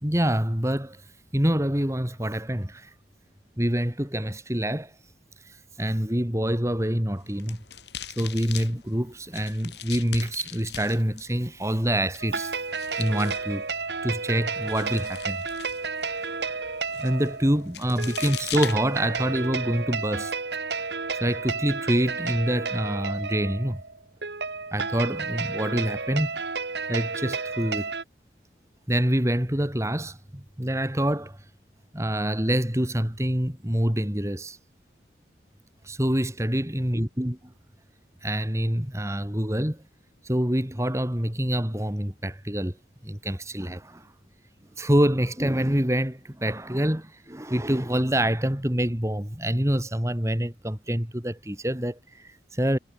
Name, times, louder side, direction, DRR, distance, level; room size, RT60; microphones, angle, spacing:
voice 1, 0.0-1.0 1.3-2.9 3.6-4.9 5.4-7.6 8.2-12.5 13.0-13.6 14.0-15.4 17.0-20.4 21.2-23.8 24.7-26.3 26.9-27.9 28.9-31.4 31.9-34.6 35.8-37.3 38.2-39.8 40.2-42.8 43.0-44.1 44.8-52.8, equal, 15° right, 2.6 m, -26 dB
sound 1, 7.1-19.5, left 9 dB, 80° left, 5.6 m, -42 dB
sound 2, 12.2-28.0, right 4 dB, 75° right, 2.7 m, -32 dB
head